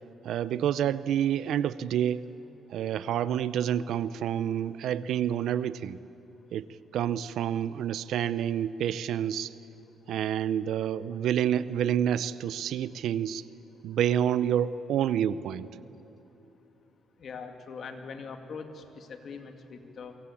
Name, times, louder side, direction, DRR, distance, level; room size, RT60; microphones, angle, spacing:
voice 1, 0.2-2.2 2.7-6.0 6.5-6.7 6.9-9.5 10.1-13.4 13.8-15.7, right 10 dB, 75° right, 16 dB, 0.7 m, -28 dB
voice 2, 17.2-20.2, left 5 dB, 55° left, 6 dB, 2.4 m, -42 dB
24.5 x 23.0 x 8.6 m, 3.0 s
cardioid pair, 90°, 0 cm